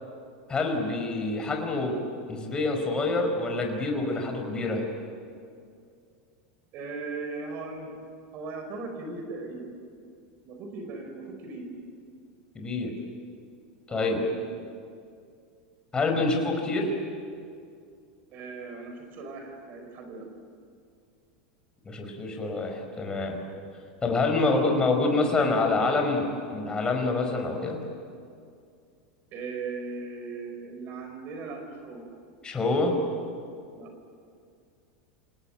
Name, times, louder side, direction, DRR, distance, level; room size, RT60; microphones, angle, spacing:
voice 1, 0.5-1.9 2.3-4.8 12.5-12.9 13.9-14.2 15.9-16.9 21.8-23.4 24.0-27.8 32.4-32.9, left 3 dB, 20° left, 3 dB, 5.1 m, -26 dB
voice 2, 6.7-7.9 8.3-9.7 10.4-11.7 13.9-14.7 18.3-20.3 24.5-24.8 29.3-32.1 33.7-33.9, right 3 dB, 45° right, 5 dB, 4.8 m, -38 dB
28.5 x 18.5 x 9.2 m, 2.3 s
supercardioid pair, 120°, 5 cm